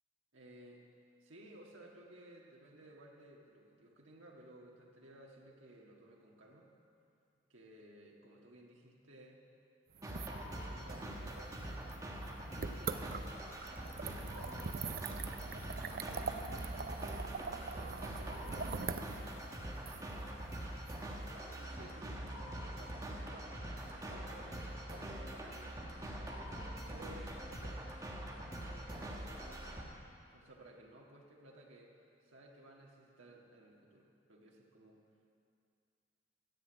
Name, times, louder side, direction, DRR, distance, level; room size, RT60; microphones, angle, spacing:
voice 1, 0.3-0.8 1.2-6.7 7.5-9.4 10.1-16.8 17.2-19.3 19.9-20.4 21.3-27.9 28.6-29.9 30.3-31.9 32.2-35.0, right 1 dB, 85° right, -2 dB, 1.6 m, -57 dB
sound 1, 9.9-21.8, right 4 dB, 50° right, 0.5 m, -44 dB
sound 2, 10.0-29.8, right 1 dB, 15° right, 1.4 m, -44 dB
13.0 x 8.0 x 8.8 m, 2.5 s
head